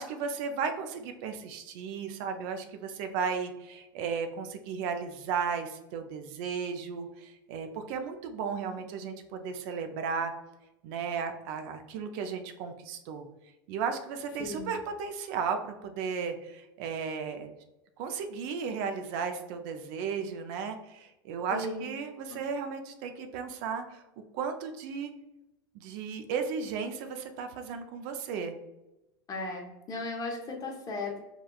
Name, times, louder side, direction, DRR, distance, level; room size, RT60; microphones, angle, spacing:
voice 1, 0.0-10.3 10.8-13.3 13.7-17.5 18.0-24.0 24.3-25.1 25.7-28.6, right 6 dB, 60° right, 6 dB, 0.4 m, -35 dB
voice 2, 14.4-14.7 21.5-21.9 22.3-22.4 29.3-31.2, left 2 dB, 30° left, 1 dB, 0.7 m, -36 dB
3.4 x 2.3 x 2.2 m, 0.97 s
hypercardioid pair, 90°, 12 cm